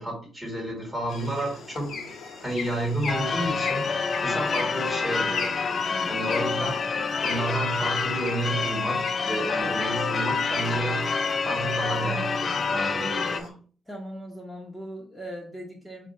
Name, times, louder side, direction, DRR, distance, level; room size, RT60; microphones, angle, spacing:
voice 1, 0.0-2.0 2.4-3.9 4.2-5.5 6.1-6.8 7.2-11.1 11.4-13.5, right 2 dB, 20° right, 1 dB, 1.5 m, -31 dB
sound 1, 1.1-13.5, left 5 dB, 60° left, 0.8 m, -39 dB
Church bell / Car / Alarm, 3.1-13.4, left 5 dB, 45° left, 0.4 m, -27 dB
voice 2, 5.9-6.2 13.9-16.1, equal, 5° left, -3 dB, 0.9 m, -39 dB
4.4 x 2.5 x 4.2 m, 0.42 s
cardioid pair, 90°, 0 cm